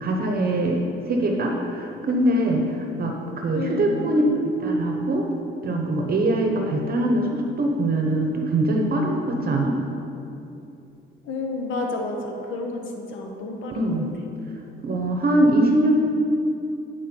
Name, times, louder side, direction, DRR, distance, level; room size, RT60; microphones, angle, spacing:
voice 1, 0.0-2.6 3.0-4.3 4.6-5.2 5.6-9.8 13.7-14.1 14.8-15.9, right 1 dB, 50° right, 1 dB, 0.9 m, -22 dB
voice 2, 3.5-4.0 11.2-13.9, left 3 dB, 80° left, 2 dB, 1.0 m, -30 dB
9.2 x 4.6 x 4.4 m, 2.7 s
cardioid pair, 90°, 20 cm